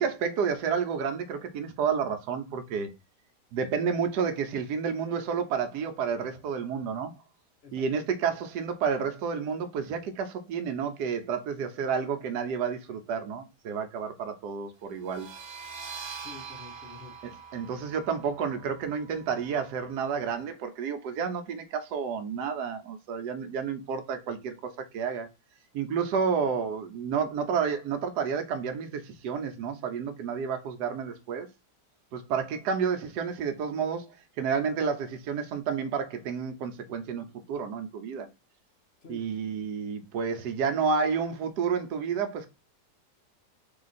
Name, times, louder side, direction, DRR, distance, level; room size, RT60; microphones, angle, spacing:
voice 1, 0.0-2.9 3.5-7.1 7.7-15.3 17.5-25.3 25.7-31.5 32.1-34.1 34.4-38.3 39.1-42.5, right 6 dB, 75° right, 1.2 m, -30 dB
sound 1, 15.0-20.4, right 6 dB, 55° right, 0.8 m, -44 dB
voice 2, 16.2-17.3 39.0-39.3, left 5 dB, 55° left, 0.7 m, -48 dB
3.8 x 2.8 x 4.0 m
omnidirectional pair, 1.8 m